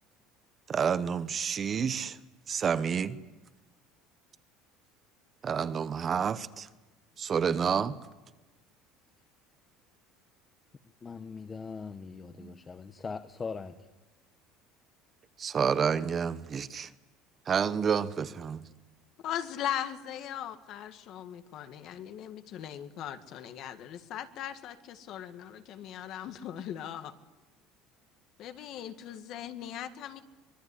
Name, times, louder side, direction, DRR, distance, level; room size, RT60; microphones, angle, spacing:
voice 1, 0.7-2.2 2.5-3.2 5.4-6.7 7.2-8.0 12.4-12.6 15.4-16.9 17.5-18.6, right 7 dB, 20° right, 13 dB, 0.8 m, -29 dB
voice 2, 11.0-13.8, left 5 dB, 15° left, 10 dB, 0.9 m, -40 dB
voice 3, 19.2-27.1 28.4-30.2, left 10 dB, 40° left, 9 dB, 1.9 m, -39 dB
25.0 x 23.0 x 9.9 m, 1.1 s
cardioid pair, 175°, 0 cm